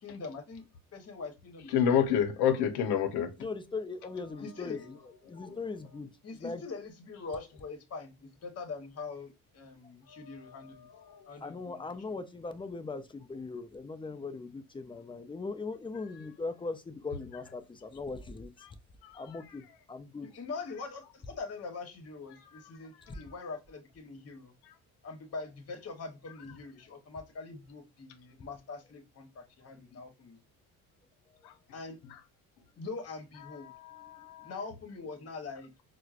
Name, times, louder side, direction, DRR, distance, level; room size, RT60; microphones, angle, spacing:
voice 1, 0.0-0.6 0.9-2.0 4.4-4.9 6.2-10.9 11.3-11.8 12.1-12.2 20.2-24.5 25.0-30.4 31.7-32.0 32.8-33.7 34.4-35.7, left 4 dB, 40° left, 1.1 m, -43 dB
voice 2, 1.7-3.3 19.0-19.2 33.7-34.5, left 8 dB, 80° left, 0.8 m, -28 dB
voice 3, 3.4-5.0 5.3-6.6 11.4-18.5 19.1-20.3 34.0-34.3, left 3 dB, 15° left, 0.4 m, -40 dB
4.5 x 2.2 x 2.4 m
cardioid pair, 100°, 38 cm